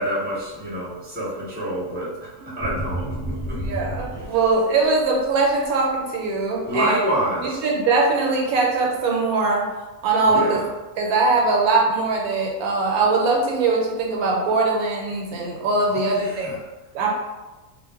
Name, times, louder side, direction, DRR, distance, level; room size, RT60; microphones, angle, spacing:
voice 1, 0.0-2.1 2.4-3.6 6.6-7.6 10.2-10.7 15.8-16.6, right 1 dB, 10° right, -7 dB, 0.7 m, -27 dB
sound 1, 2.6-4.6 5.0-5.5, right 1 dB, 45° left, 0.9 m, -30 dB
voice 2, 3.6-7.0 7.4-9.7 10.0-10.6 11.0-16.5 16.9-17.1, right 3 dB, 80° right, -1 dB, 1.1 m, -21 dB
2.4 x 2.1 x 3.4 m, 1.1 s
omnidirectional pair, 1.6 m